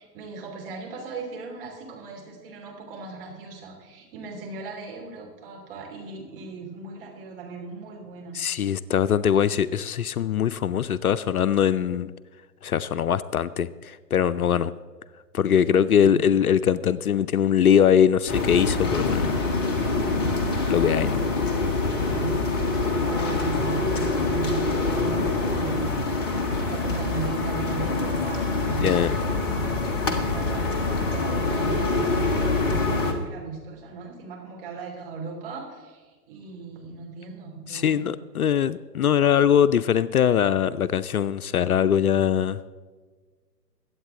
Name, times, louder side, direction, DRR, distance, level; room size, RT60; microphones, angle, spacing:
voice 1, 0.0-8.4 16.0-16.2 20.0-20.4 22.1-28.9 30.0-38.1, right 4 dB, 35° right, 0 dB, 3.1 m, -37 dB
voice 2, 8.3-12.1 12.6-14.7 15.3-19.4 20.7-21.2 28.8-29.2 37.7-42.7, left 8 dB, 65° left, 15 dB, 0.6 m, -22 dB
sound 1, 18.3-33.1, left 3 dB, 15° left, 0.7 m, -25 dB
22.5 x 8.4 x 3.7 m, 1.4 s
figure-of-eight pair, 135°, 48 cm